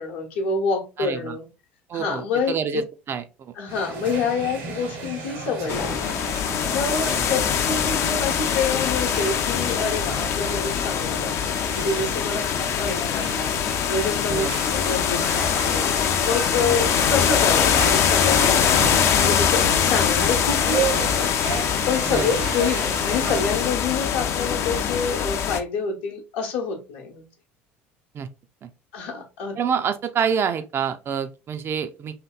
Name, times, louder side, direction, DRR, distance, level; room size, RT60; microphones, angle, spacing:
voice 1, 0.0-1.5 1.9-2.8 3.6-6.1 6.7-13.5 13.9-15.9 16.2-21.3 21.9-27.3 28.9-29.6, left 4 dB, 70° left, 0.8 m, -27 dB
voice 2, 1.0-1.4 1.9-3.5 7.1-7.3 14.3-14.5 16.6-16.8 22.1-22.3 28.1-28.3 28.6-28.7 29.6-32.1, right 7 dB, 40° right, 0.4 m, -27 dB
sound 1, 3.7-23.5, right 5 dB, 75° right, 1.3 m, -34 dB
sound 2, 5.7-25.6, left 8 dB, 45° left, 0.4 m, -23 dB
2.8 x 2.8 x 2.2 m
hypercardioid pair, 70°, 6 cm